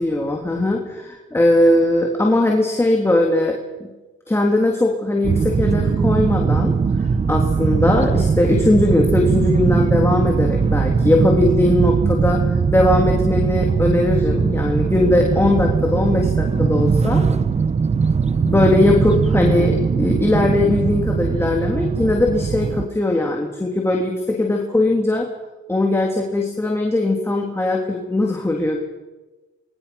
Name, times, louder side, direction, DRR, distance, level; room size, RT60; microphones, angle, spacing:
voice 1, 0.0-3.9 4.3-6.8 7.3-12.4 12.7-17.3 18.3-25.3 25.7-28.8, left 2 dB, 10° left, 0 dB, 3.3 m, -19 dB
sound 1, 5.2-22.9, right 5 dB, 35° right, 1.0 m, -20 dB
25.5 x 22.5 x 6.1 m, 1.2 s
cardioid pair, 90°, 20 cm